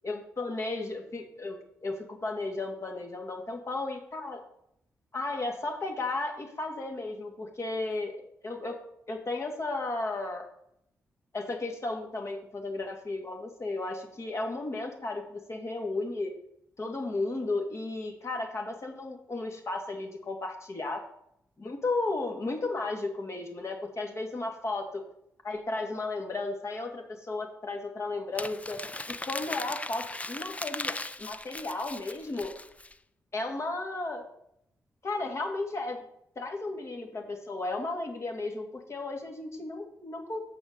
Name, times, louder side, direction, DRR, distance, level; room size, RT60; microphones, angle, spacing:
voice 1, 0.0-4.4 5.1-8.8 9.1-10.5 11.3-16.3 16.8-21.0 21.6-24.9 25.4-28.8 29.1-32.5 33.3-34.2 35.0-36.0 36.4-40.4, left 2 dB, 50° left, 2 dB, 2.4 m, -34 dB
Crumpling crinkling, 28.4-32.9, left 2 dB, 20° left, 0.6 m, -38 dB
7.8 x 6.0 x 6.9 m, 0.75 s
cardioid pair, 50°, 6 cm